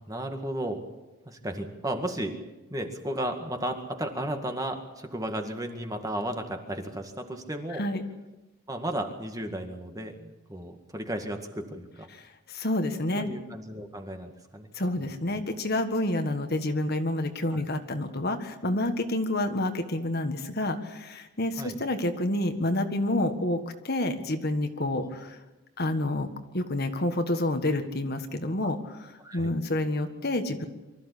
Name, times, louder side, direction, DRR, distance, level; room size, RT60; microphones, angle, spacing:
voice 1, 0.1-0.8 1.3-2.3 2.7-7.8 8.7-12.1 13.2-14.7 17.5-17.6 21.6-21.8 25.0-25.2 29.2-29.5, right 1 dB, 15° right, 4 dB, 1.9 m, -34 dB
voice 2, 7.7-8.0 12.5-13.3 14.7-25.4 25.8-26.3 26.5-30.7, left 1 dB, 50° left, 7 dB, 1.6 m, -28 dB
24.5 x 14.0 x 8.5 m, 1.1 s
head